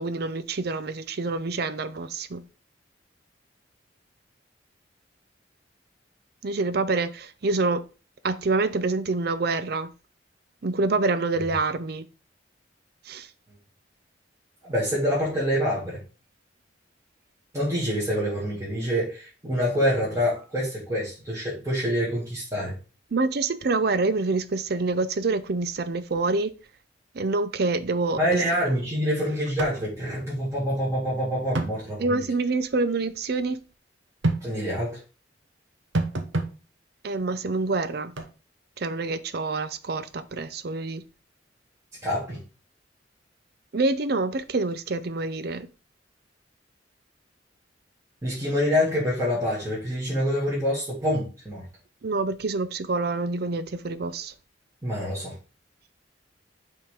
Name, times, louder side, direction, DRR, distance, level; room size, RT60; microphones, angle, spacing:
voice 1, 0.0-2.4 6.4-7.9 8.2-9.9 10.6-12.0 13.1-13.3 23.1-26.5 27.2-28.2 32.0-33.6 37.0-38.1 38.8-41.0 43.7-45.7 52.0-54.3, right 3 dB, 55° right, 0.5 m, -26 dB
voice 2, 14.6-16.0 17.5-22.7 28.2-32.2 34.4-35.0 42.0-42.4 48.2-51.6 54.8-55.3, equal, 15° right, 2.2 m, -26 dB
sound 1, 29.6-29.8 30.1-30.2 31.5-31.8 34.2-34.4 35.9-36.5 38.2-38.3, right 2 dB, 90° right, 1.0 m, -26 dB
5.5 x 3.7 x 4.9 m
head